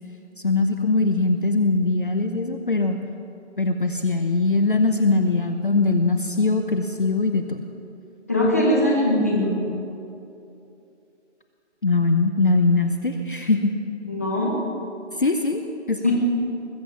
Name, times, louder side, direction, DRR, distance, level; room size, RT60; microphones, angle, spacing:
voice 1, 0.4-3.0 3.6-7.6 11.8-13.7 15.2-15.6 15.9-16.1, left 3 dB, 45° left, 6 dB, 0.8 m, -21 dB
voice 2, 8.3-9.6 14.0-14.6 16.0-16.1, left 1 dB, 15° left, -3 dB, 1.1 m, -21 dB
20.5 x 7.7 x 7.4 m, 2.8 s
hypercardioid pair, 180°, 36 cm